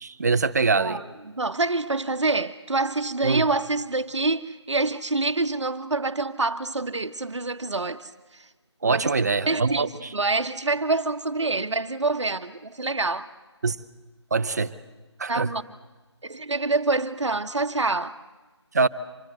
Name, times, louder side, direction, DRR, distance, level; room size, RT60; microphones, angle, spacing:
voice 1, 0.0-1.0 3.2-3.4 8.8-10.1 13.6-13.8 14.3-14.7 15.2-15.5 18.7-18.9, right 4 dB, 35° right, 0.8 m, -23 dB
voice 2, 0.8-8.1 8.8-9.1 9.5-9.9 10.1-13.3 15.3-15.6 16.2-18.2, right 3 dB, 80° right, 1.1 m, -26 dB
25.5 x 20.0 x 7.9 m
figure-of-eight pair, 165°, 15 cm